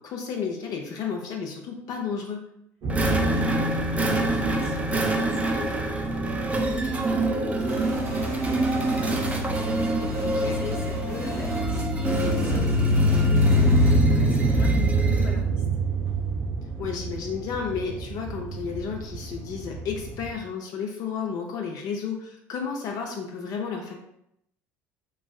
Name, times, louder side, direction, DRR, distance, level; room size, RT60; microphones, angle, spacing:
voice 1, 0.0-2.4 10.2-10.6 16.8-23.9, left 6 dB, 55° left, 1 dB, 0.5 m, -32 dB
sound 1, 2.8-20.3, equal, 60° right, 0.8 m, -27 dB
sound 2, 2.9-15.4, right 2 dB, 15° right, 0.4 m, -27 dB
voice 2, 3.2-15.6, left 2 dB, 30° left, -3 dB, 0.9 m, -42 dB
sound 3, 7.7-11.6 12.0-14.6, equal, 85° right, 1.4 m, -37 dB
3.1 x 2.6 x 2.2 m, 0.76 s
hypercardioid pair, 75°, 8 cm